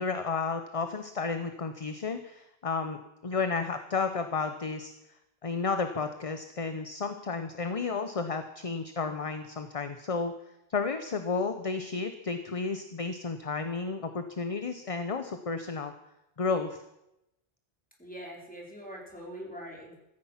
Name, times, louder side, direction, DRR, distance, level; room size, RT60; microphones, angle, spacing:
voice 1, 0.0-3.0 3.2-4.9 5.4-10.3 10.7-15.9 16.4-16.8, left 4 dB, 35° left, 9 dB, 0.9 m, -32 dB
voice 2, 18.0-20.0, equal, 10° left, -2 dB, 4.0 m, -43 dB
15.0 x 14.5 x 5.8 m, 0.88 s
omnidirectional pair, 1.0 m